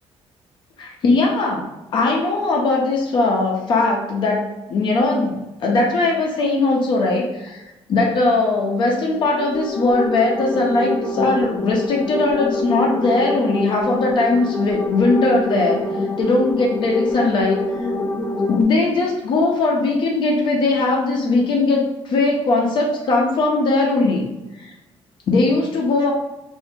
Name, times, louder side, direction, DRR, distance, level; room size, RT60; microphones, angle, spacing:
voice 1, 0.8-15.8 16.2-17.6 18.5-24.3 24.6-24.7 25.3-26.1, left 3 dB, 50° left, -1 dB, 0.6 m, -19 dB
sound 1, 9.2-18.6, left 2 dB, 15° left, 0.4 m, -25 dB
2.8 x 2.6 x 3.5 m, 1.0 s
cardioid pair, 175°, 11 cm